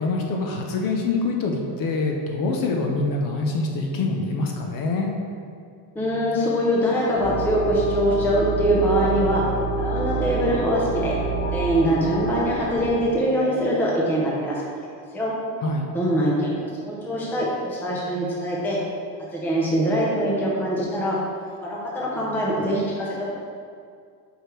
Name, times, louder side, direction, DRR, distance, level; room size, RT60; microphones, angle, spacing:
voice 1, 0.0-5.1 15.6-15.9, left 3 dB, 45° left, 2 dB, 0.6 m, -25 dB
voice 2, 6.0-9.4 9.8-11.1 11.5-14.6 15.1-15.3 15.9-18.8 19.3-21.2 21.6-23.3, equal, 5° left, -5 dB, 0.5 m, -23 dB
sound 1, 7.2-12.9, right 2 dB, 30° left, 1.2 m, -27 dB
4.9 x 4.9 x 4.5 m, 2.2 s
cardioid pair, 175°, 48 cm